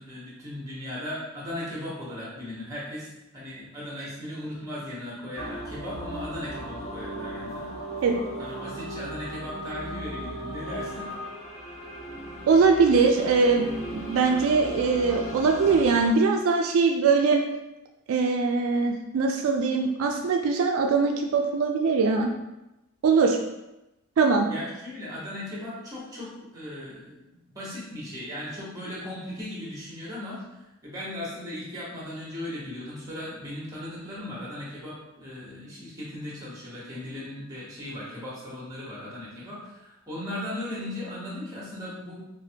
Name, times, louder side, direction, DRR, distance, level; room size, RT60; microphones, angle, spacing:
voice 1, 0.0-7.7 8.4-11.1 24.5-42.2, left 1 dB, 15° right, -6 dB, 1.1 m, -37 dB
sound 1, 5.4-16.1, right 1 dB, 35° left, 1.0 m, -37 dB
voice 2, 12.5-17.4 18.1-22.3 23.0-23.4 24.2-24.5, right 4 dB, 75° right, 2 dB, 0.3 m, -22 dB
4.9 x 2.1 x 2.8 m, 0.95 s
head